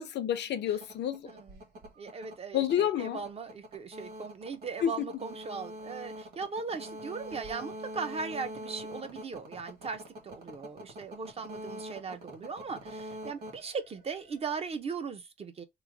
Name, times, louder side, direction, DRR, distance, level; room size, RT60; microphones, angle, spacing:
voice 1, 0.0-1.3 2.5-3.2 4.8-4.9, left 10 dB, 70° left, 0.6 m, -29 dB
sound 1, 0.7-14.5, equal, 55° right, 1.5 m, -44 dB
voice 2, 1.2-1.6 2.0-15.6, right 5 dB, 35° right, 0.5 m, -38 dB
3.1 x 2.0 x 3.7 m
cardioid pair, 145°, 19 cm